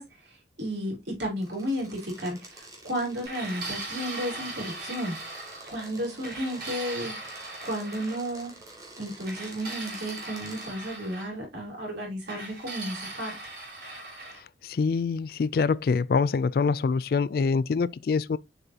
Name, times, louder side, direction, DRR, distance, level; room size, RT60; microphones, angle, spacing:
voice 1, 0.0-5.4 5.6-7.4 7.6-8.5 9.0-13.3, equal, 80° right, 3.8 m, -33 dB
sound 1, 1.4-10.7, right 2 dB, 20° right, 2.1 m, -48 dB
sound 2, 3.2-5.8 6.2-8.2 9.2-11.3 12.3-14.4, right 2 dB, 55° right, 3.6 m, -39 dB
voice 2, 14.6-18.4, left 5 dB, 55° left, 0.3 m, -25 dB
7.0 x 5.3 x 2.9 m
head